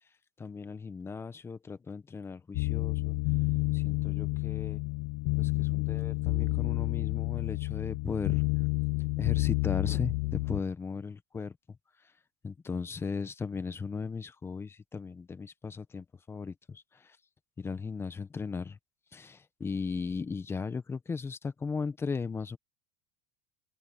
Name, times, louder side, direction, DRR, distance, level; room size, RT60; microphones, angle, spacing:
voice 1, 0.4-3.2 3.7-4.8 5.4-8.4 9.2-11.6 12.4-17.2 17.6-18.8 19.1-22.6, left 5 dB, 15° left, 1.2 m, -37 dB
sound 1, 2.5-10.6, left 27 dB, 60° left, 0.5 m, -30 dB
open air
supercardioid pair, 130°, 15 cm